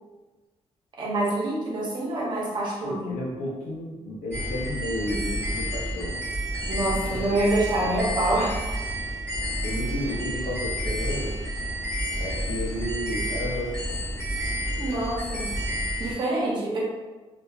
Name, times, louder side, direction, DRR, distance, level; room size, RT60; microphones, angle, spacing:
voice 1, 1.0-3.2 6.7-8.9 14.8-15.6 16.0-16.8, right 1 dB, 40° right, -4 dB, 0.7 m, -26 dB
voice 2, 2.8-6.1 6.9-7.4 7.8-7.9 9.6-11.4 12.2-13.8, left 1 dB, 80° left, -4 dB, 0.6 m, -32 dB
sound 1, 4.3-16.1, equal, 20° left, 1.3 m, -30 dB
2.7 x 2.2 x 2.3 m, 1.2 s
cardioid pair, 160°, 11 cm